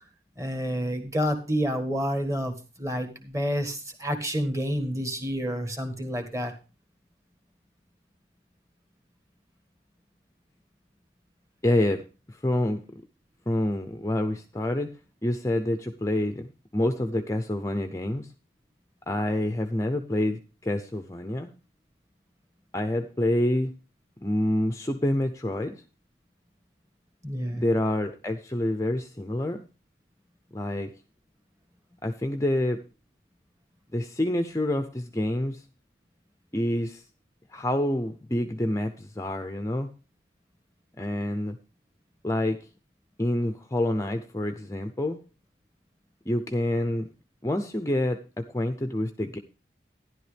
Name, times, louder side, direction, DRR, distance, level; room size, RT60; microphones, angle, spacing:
voice 1, 0.4-6.5 27.2-27.6, equal, 20° right, 6 dB, 1.6 m, -29 dB
voice 2, 11.6-12.8 13.5-14.9 15.2-18.3 19.1-21.5 22.7-23.7 24.2-25.8 27.5-29.6 30.5-30.9 32.0-32.8 33.9-35.6 36.5-37.0 37.5-39.9 41.0-41.6 42.2-42.6 43.2-45.2 46.3-47.1 47.4-49.4, left 1 dB, 15° left, 7 dB, 0.5 m, -27 dB
12.5 x 11.0 x 3.4 m, 0.32 s
head